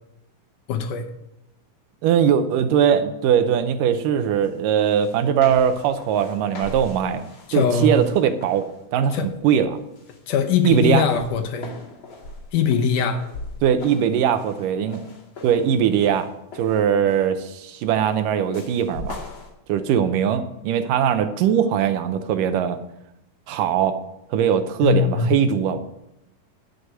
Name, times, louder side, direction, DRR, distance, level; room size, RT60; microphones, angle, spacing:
voice 1, 0.7-1.0 7.5-8.0 9.1-9.3 10.3-11.7 12.5-13.2 24.8-25.3, left 6 dB, 75° left, 7 dB, 2.4 m, -21 dB
voice 2, 2.0-7.2 7.5-8.7 8.9-9.2 9.4-9.8 10.6-11.0 13.6-15.0 15.4-16.3 16.6-19.2 19.7-22.8 23.5-24.0 24.3-25.8, right 8 dB, 80° right, 9 dB, 2.3 m, -20 dB
sound 1, 4.4-4.5 4.8-8.8 9.3-9.6 10.0-17.4 18.5-19.5, left 3 dB, 40° left, 2.5 m, -41 dB
11.5 x 6.4 x 8.1 m, 0.86 s
omnidirectional pair, 3.9 m